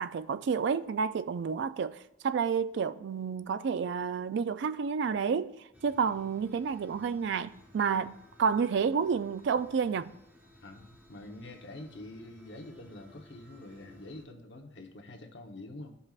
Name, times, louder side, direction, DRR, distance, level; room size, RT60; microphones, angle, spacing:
voice 1, 0.0-5.5 5.8-10.1, right 6 dB, 65° right, 0.3 m, -30 dB
sound 1, 5.7-14.2, left 1 dB, 10° right, 1.0 m, -58 dB
voice 2, 10.6-16.0, left 2 dB, 70° left, 1.0 m, -46 dB
13.0 x 5.4 x 2.4 m
head